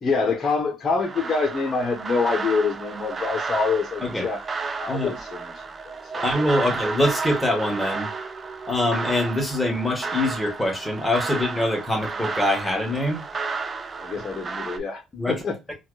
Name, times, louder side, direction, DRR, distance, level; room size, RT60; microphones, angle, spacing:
voice 1, 0.0-4.4 4.8-5.5 6.1-6.3 14.0-15.6, left 4 dB, 35° left, 0.9 m, -25 dB
sound 1, 1.0-14.8, right 4 dB, 30° right, 0.4 m, -32 dB
voice 2, 6.2-8.1 8.7-13.2 15.1-15.4 15.7-15.8, left 1 dB, 10° left, 1.2 m, -24 dB
4.3 x 2.4 x 2.2 m
cardioid pair, 115°, 0 cm